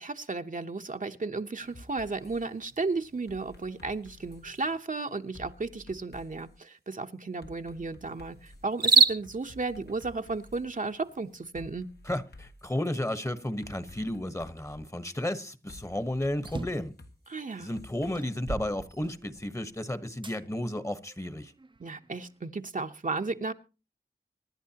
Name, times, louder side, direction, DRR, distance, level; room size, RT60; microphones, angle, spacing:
voice 1, 0.0-11.9 17.3-17.7 21.8-23.5, right 3 dB, 50° right, 0.9 m, -34 dB
sound 1, 1.6-18.6, right 4 dB, 75° right, 1.3 m, -35 dB
sound 2, 1.7-2.4 3.3-4.7 5.3-6.5 7.4-8.7 9.2-10.6 11.5-12.9 13.6-14.8 15.7-18.1, left 1 dB, 80° left, 2.0 m, -51 dB
voice 2, 12.1-16.9 17.6-21.5, left 1 dB, 15° left, 1.2 m, -33 dB
sound 3, 16.4-16.9 17.6-17.7 18.1-19.6 20.2-20.4 21.1-22.2, right 3 dB, 30° right, 0.6 m, -40 dB
24.5 x 11.0 x 2.9 m
wide cardioid pair, 80°, 17 cm